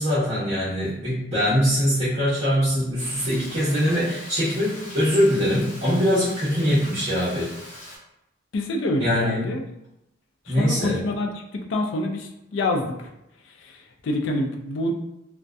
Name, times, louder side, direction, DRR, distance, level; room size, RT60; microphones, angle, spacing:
voice 1, 0.0-7.5 9.0-9.5 10.5-11.0, equal, 35° right, -13 dB, 0.8 m, -22 dB
Frying (food), 3.0-8.0, left 1 dB, 40° left, 0.9 m, -41 dB
voice 2, 8.5-9.6 10.5-13.1 13.4-14.9, left 1 dB, 65° left, 3 dB, 0.4 m, -27 dB
2.6 x 2.1 x 2.3 m, 0.85 s
head